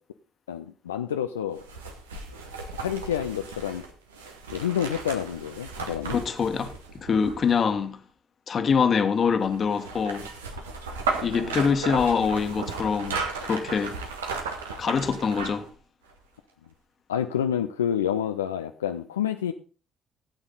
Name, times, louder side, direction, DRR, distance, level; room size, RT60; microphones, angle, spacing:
voice 1, 0.5-1.7 2.8-3.8 4.5-6.2 11.2-11.5 17.1-19.5, left 9 dB, 75° left, 0.4 m, -28 dB
sound 1, 1.6-7.7 9.4-15.7 16.1-16.2, right 4 dB, 75° right, 1.5 m, -35 dB
voice 2, 6.0-8.0 8.5-10.3 11.2-14.0 14.8-15.7, left 6 dB, 40° left, 1.4 m, -24 dB
16.0 x 8.8 x 4.0 m
figure-of-eight pair, 50°, 0 cm